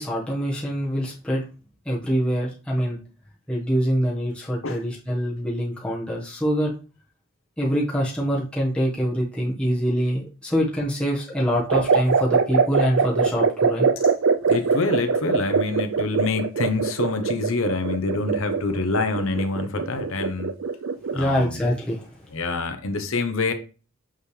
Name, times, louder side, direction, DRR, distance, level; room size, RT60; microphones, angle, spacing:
voice 1, 0.0-1.4 1.8-3.0 3.5-6.7 7.6-13.9 21.1-22.1, equal, 5° left, 1.3 m, -24 dB
sound 1, 11.7-21.3, right 5 dB, 60° right, 0.4 m, -22 dB
voice 2, 14.5-20.6 21.1-21.6 22.3-23.5, left 3 dB, 60° left, 0.9 m, -26 dB
6.6 x 5.6 x 3.2 m
head